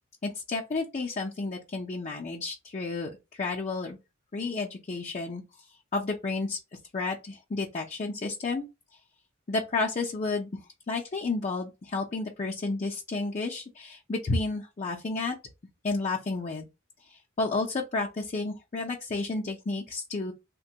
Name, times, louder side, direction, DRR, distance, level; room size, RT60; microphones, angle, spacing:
voice 1, 0.2-3.1 3.4-4.0 4.3-5.4 5.9-6.6 6.9-8.7 9.5-10.5 10.9-15.4 15.8-16.7 17.4-20.3, left 3 dB, 35° left, 0.5 m, -31 dB
3.3 x 2.2 x 2.7 m
head